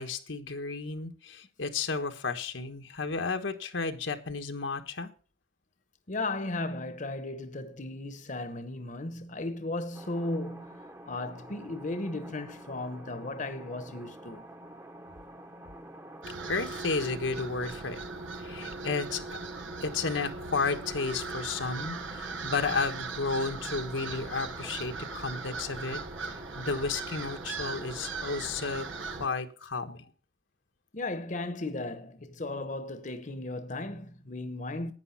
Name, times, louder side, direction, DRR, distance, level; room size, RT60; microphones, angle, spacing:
voice 1, 0.0-5.1 16.5-18.0 18.4-19.2 19.8-30.0, left 4 dB, 85° left, 1.4 m, -33 dB
voice 2, 6.1-14.5 30.9-34.9, left 2 dB, 40° left, 1.0 m, -36 dB
sound 1, 9.9-29.3, right 1 dB, 15° right, 1.0 m, -48 dB
sound 2, 16.2-29.3, right 4 dB, 90° right, 1.0 m, -39 dB
11.0 x 9.5 x 5.7 m
head